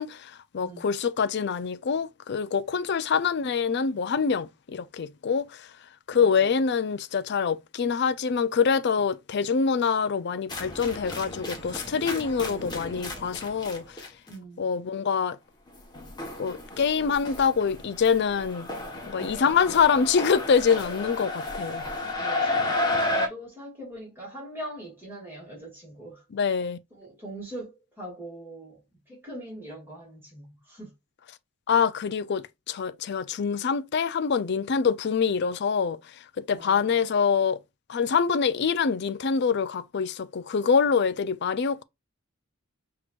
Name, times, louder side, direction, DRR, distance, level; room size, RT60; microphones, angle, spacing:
voice 1, 0.0-5.7 6.1-14.0 14.6-15.4 16.4-18.7 19.0-21.8 26.3-26.8 31.7-36.0 36.5-37.6 37.9-41.8, left 6 dB, 55° left, 0.4 m, -25 dB
voice 2, 6.2-6.5 14.3-14.6 22.2-22.8 23.1-26.2 26.9-28.8 29.1-30.9 36.5-36.9, right 1 dB, 10° right, 2.5 m, -41 dB
sound 1, 10.5-14.3 15.7-23.3, left 2 dB, 20° left, 1.2 m, -32 dB
6.1 x 2.9 x 2.5 m
head